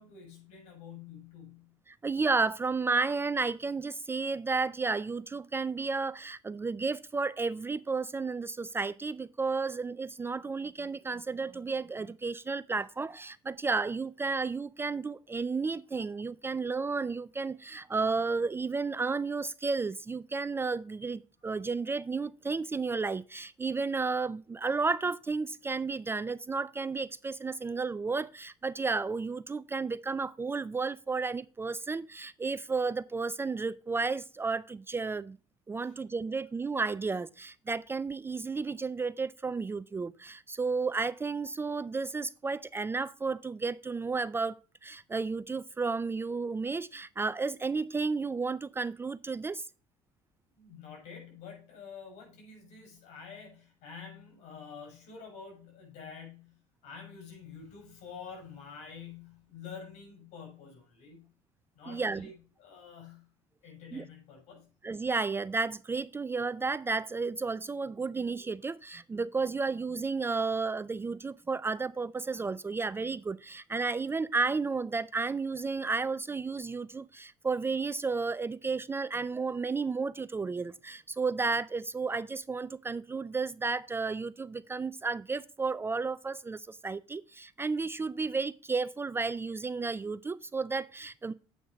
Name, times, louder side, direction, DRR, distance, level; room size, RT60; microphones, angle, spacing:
voice 1, 0.0-1.7 35.8-35.9 50.5-56.6 56.8-61.3 61.7-63.3 63.6-64.7, left 6 dB, 70° left, 6.0 m, -48 dB
voice 2, 1.9-35.4 35.7-49.6 61.9-62.3 63.9-64.0 64.8-91.3, right 4 dB, 20° right, 0.3 m, -32 dB
8.6 x 5.9 x 5.2 m
supercardioid pair, 95°, 12 cm